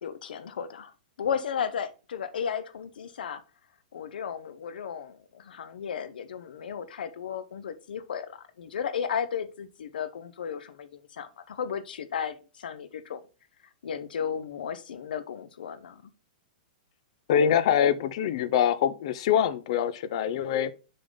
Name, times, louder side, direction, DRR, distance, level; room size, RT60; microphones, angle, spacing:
voice 1, 0.0-3.4 3.9-13.2 13.8-16.1, left 7 dB, 90° left, 0.7 m, -34 dB
voice 2, 17.3-20.7, left 9 dB, 40° left, 0.5 m, -24 dB
6.8 x 3.7 x 3.8 m
hypercardioid pair, 175°, 5 cm